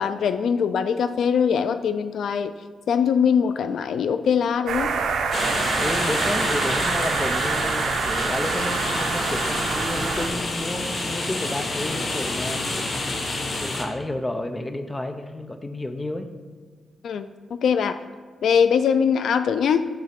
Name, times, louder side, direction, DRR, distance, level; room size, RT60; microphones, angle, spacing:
voice 1, 0.0-2.5 2.9-4.9 17.0-18.0 18.4-19.9, left 7 dB, 65° left, 11 dB, 0.3 m, -22 dB
sound 1, 4.7-10.3, right 5 dB, 85° right, 0.8 m, -26 dB
sound 2, 5.3-13.8, left 2 dB, 40° left, 1.1 m, -28 dB
voice 2, 5.7-12.6 13.6-16.3, left 1 dB, 10° left, 7 dB, 0.5 m, -31 dB
10.0 x 3.6 x 5.9 m, 1.5 s
wide cardioid pair, 155°, 0 cm